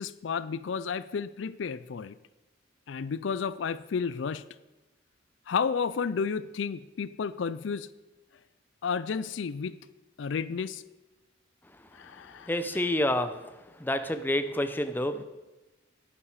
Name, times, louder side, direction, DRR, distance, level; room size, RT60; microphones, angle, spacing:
voice 1, 0.0-2.2 2.9-4.5 5.5-7.9 8.8-9.8 10.2-10.8 11.9-12.6, left 6 dB, 75° left, 16 dB, 0.4 m, -32 dB
voice 2, 12.5-13.3 13.8-15.2, left 1 dB, 10° left, 9 dB, 0.6 m, -28 dB
10.5 x 9.9 x 4.8 m, 1.1 s
head